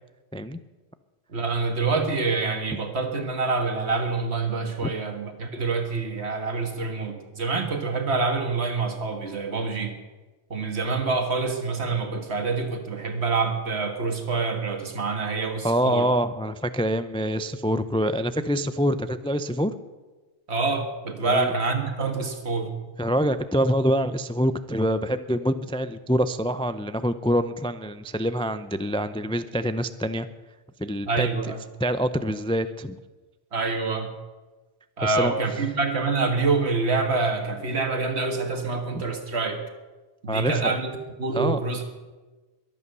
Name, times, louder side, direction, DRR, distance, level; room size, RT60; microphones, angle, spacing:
voice 1, 1.3-9.9 10.5-16.1 20.5-22.7 31.1-31.6 33.5-34.1 35.0-39.6 40.2-40.9 41.2-41.9, right 4 dB, 70° right, 6 dB, 2.0 m, -26 dB
voice 2, 15.6-19.7 21.2-21.5 23.0-30.3 30.8-31.3 31.8-33.0 35.0-35.3 38.9-39.0 40.3-40.7 41.3-41.6, equal, 10° left, 11 dB, 0.3 m, -25 dB
22.0 x 8.6 x 6.8 m, 1.2 s
omnidirectional pair, 1.1 m